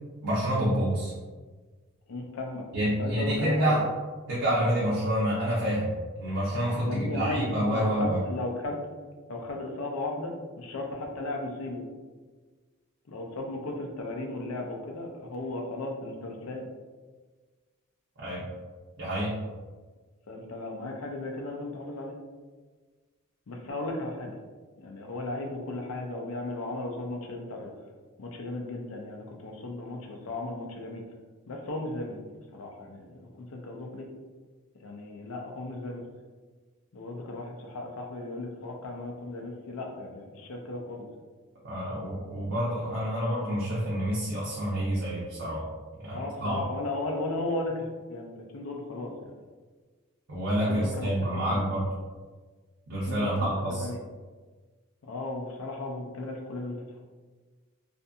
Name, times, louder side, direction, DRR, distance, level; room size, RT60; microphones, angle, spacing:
voice 1, 0.2-1.1 2.7-3.8 4.3-5.9 6.2-8.2 18.2-18.5 19.0-19.4 41.6-45.7 46.0-46.6 50.3-51.9 52.9-53.9, equal, 55° right, -7 dB, 0.6 m, -28 dB
voice 2, 2.1-3.7 6.8-8.9 9.3-11.8 13.1-16.6 20.3-22.2 23.5-24.4 24.8-27.7 28.2-31.0 31.5-32.2 32.5-34.1 34.8-36.0 36.9-41.0 46.1-49.4 50.7-51.6 53.1-53.5 53.8-54.0 55.0-57.0, left 2 dB, 70° left, 1 dB, 0.5 m, -35 dB
2.6 x 2.5 x 2.3 m, 1.4 s
head